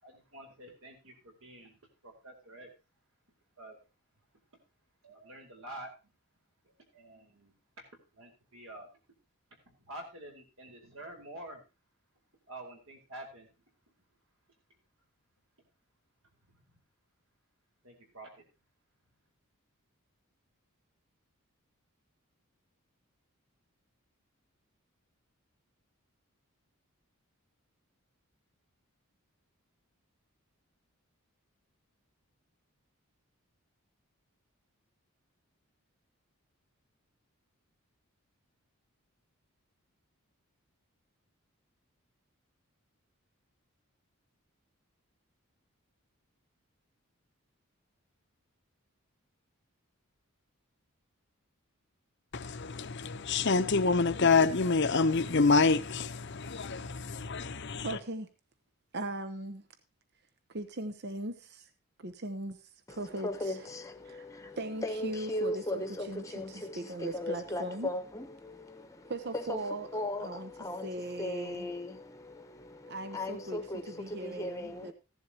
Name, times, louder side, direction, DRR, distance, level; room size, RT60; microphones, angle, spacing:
voice 1, 0.0-2.7 3.6-3.8 5.0-6.1 6.6-7.9 8.1-8.9 9.6-11.6 12.5-13.6 16.5-16.8 17.8-18.4, right 1 dB, 70° right, 4.6 m, -48 dB
voice 2, 52.3-57.9, left 4 dB, 55° left, 0.8 m, -27 dB
voice 3, 57.8-58.3 58.9-59.7 60.5-61.7 62.0-62.6 62.9-63.7 64.0-64.3 64.6-67.9 69.1-71.7 72.9-74.9, right 2 dB, 50° right, 0.9 m, -39 dB
voice 4, 62.9-74.9, left 1 dB, 15° left, 1.1 m, -38 dB
15.5 x 11.0 x 2.9 m
head